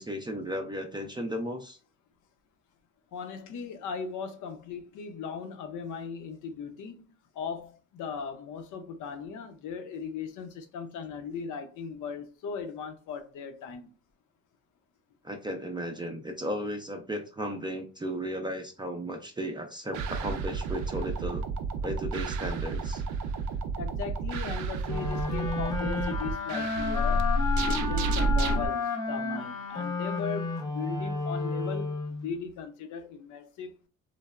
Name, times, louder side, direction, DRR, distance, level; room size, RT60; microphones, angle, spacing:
voice 1, 0.0-1.8 15.2-21.4 21.8-23.0, equal, 15° right, 0.4 m, -35 dB
voice 2, 3.1-7.0 7.3-13.9 23.7-27.3 27.7-31.9 32.2-33.8, left 6 dB, 80° left, 0.6 m, -38 dB
sound 1, 19.9-28.7, right 2 dB, 75° right, 0.5 m, -30 dB
sound 2, 24.9-32.3, left 3 dB, 15° left, 0.7 m, -32 dB
3.2 x 2.0 x 2.3 m
cardioid pair, 90°, 30 cm